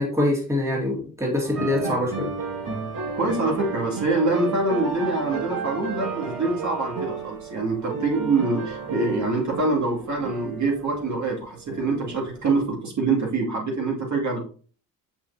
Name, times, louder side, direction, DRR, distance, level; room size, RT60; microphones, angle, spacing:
voice 1, 0.0-2.3, left 1 dB, 10° right, -1 dB, 2.1 m, -24 dB
sound 1, 1.4-12.7, right 4 dB, 70° right, 3.0 m, -33 dB
voice 2, 3.1-14.4, right 3 dB, 55° right, -2 dB, 2.5 m, -25 dB
6.3 x 5.9 x 2.8 m, 0.41 s
cardioid pair, 75°, 35 cm